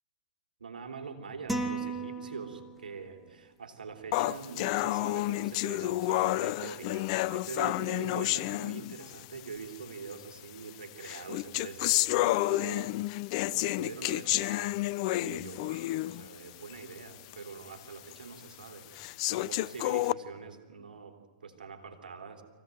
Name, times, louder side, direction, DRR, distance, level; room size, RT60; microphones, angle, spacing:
voice 1, 0.6-14.8 15.1-19.0 19.3-21.1 21.4-22.4, right 5 dB, 85° right, 4 dB, 3.4 m, -44 dB
sound 1, 1.5-3.0, right 2 dB, 5° right, 2.3 m, -35 dB
sound 2, 4.1-9.3 10.1-10.2 11.0-16.3 16.7-16.8 17.3-17.4 18.1-18.2 19.0-20.1, left 18 dB, 50° left, 0.6 m, -30 dB
24.0 x 16.5 x 9.3 m, 1.5 s
hypercardioid pair, 115°, 5 cm